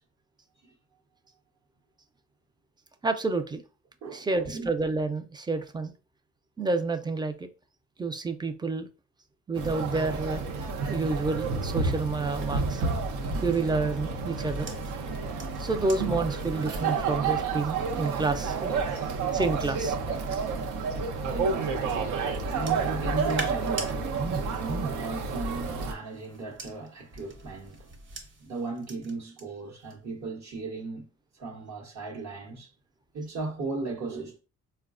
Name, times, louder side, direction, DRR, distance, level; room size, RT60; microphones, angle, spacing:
voice 1, 3.0-3.6 4.1-5.9 6.6-7.5 8.0-8.9 9.5-10.5 10.9-12.8 13.4-14.7 15.6-18.8 19.3-19.9 24.2-24.4 24.7-24.9, right 3 dB, 15° right, 0.3 m, -29 dB
voice 2, 4.0-4.7 21.2-28.0 28.4-31.1 31.4-32.7 33.1-34.4, right 3 dB, 65° right, 1.0 m, -37 dB
sound 1, 9.6-25.9, right 4 dB, 85° right, 0.6 m, -30 dB
sound 2, 13.3-20.9 21.5-23.9 25.2-29.4 29.8-30.2, right 2 dB, 40° right, 0.9 m, -46 dB
3.9 x 2.2 x 2.4 m
cardioid pair, 90°, 30 cm